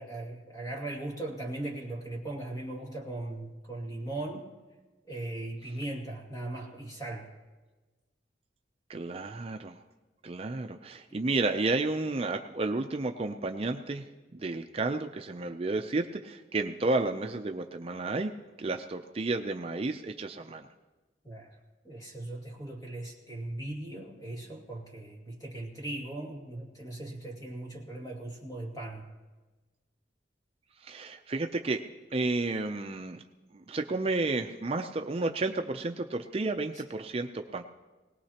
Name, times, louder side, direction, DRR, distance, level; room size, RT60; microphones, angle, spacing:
voice 1, 0.0-4.5 5.1-7.3 11.1-11.2 21.2-21.6 21.8-29.1, right 2 dB, 20° left, -1 dB, 2.2 m, -39 dB
voice 2, 8.9-9.8 10.2-14.0 14.3-18.3 18.6-20.7 30.8-31.8 32.1-33.2 33.5-37.6, right 3 dB, 35° right, 5 dB, 0.5 m, -31 dB
21.0 x 18.5 x 2.9 m, 1.2 s
head